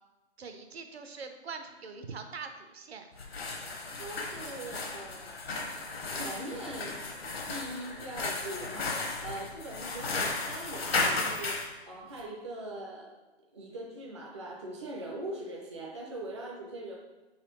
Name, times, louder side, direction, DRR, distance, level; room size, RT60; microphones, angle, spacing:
voice 1, 0.4-3.1, right 5 dB, 70° right, 6 dB, 0.7 m, -43 dB
sound 1, 3.1-11.7, left 3 dB, 65° left, 0.9 m, -34 dB
voice 2, 3.9-7.1 7.5-13.2 13.5-17.0, right 1 dB, 25° right, -1 dB, 0.4 m, -42 dB
4.4 x 4.0 x 3.0 m, 1.1 s
hypercardioid pair, 155°, 33 cm